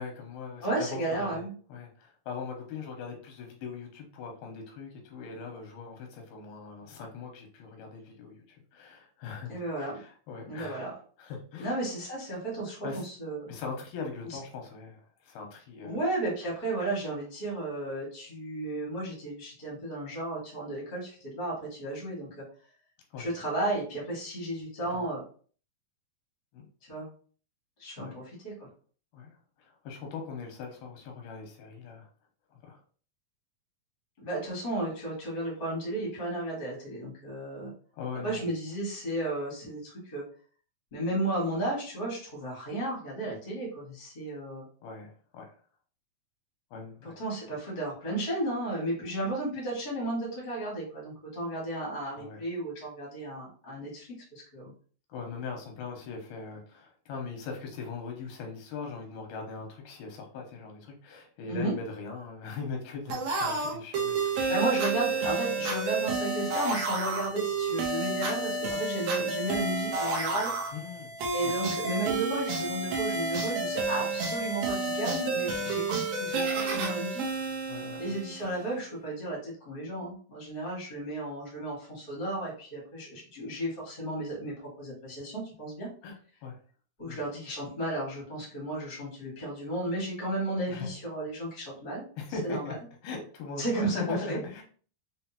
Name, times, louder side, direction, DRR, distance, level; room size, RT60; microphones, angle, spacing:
voice 1, 0.0-10.8 11.2-11.7 12.8-13.0 13.5-16.0 23.1-23.3 24.9-25.1 26.5-26.7 28.0-28.1 29.1-32.1 32.5-32.8 37.9-38.4 44.8-45.5 46.7-47.1 52.2-52.4 55.1-64.5 70.7-71.1 71.4-71.5 75.6-75.8 77.7-78.2 86.0-86.6 87.1-87.2 90.7-90.9 92.2-94.6, left 4 dB, 90° left, 2 dB, 2.7 m, -40 dB
voice 2, 0.6-1.5 9.5-10.0 10.5-10.9 11.6-12.8 13.0-13.5 15.8-22.4 23.2-25.2 26.9-27.1 27.8-28.5 34.2-37.7 38.2-40.2 40.9-44.6 47.0-54.7 61.5-61.7 64.5-70.5 71.3-77.2 78.0-85.9 87.0-92.0 92.4-92.7 93.6-94.4, right 1 dB, 65° left, -4 dB, 0.5 m, -33 dB
sound 1, 63.1-78.6, right 3 dB, 75° right, 1.6 m, -30 dB
6.2 x 2.1 x 2.8 m, 0.43 s
omnidirectional pair, 4.2 m